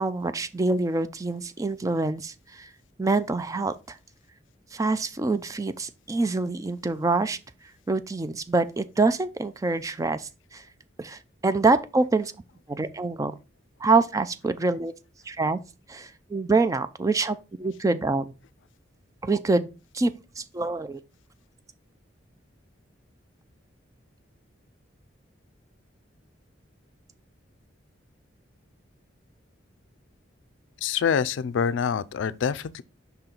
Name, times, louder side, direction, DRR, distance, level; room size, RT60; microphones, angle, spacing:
voice 1, 0.0-2.7 3.0-4.0 4.7-7.4 7.9-10.6 11.0-12.3 12.7-13.3 13.8-14.9 15.3-15.6 15.9-18.3 19.2-21.0, right 3 dB, 15° right, 0.3 m, -26 dB
voice 2, 30.8-32.8, left 7 dB, 75° left, 0.4 m, -26 dB
5.6 x 3.9 x 4.3 m
head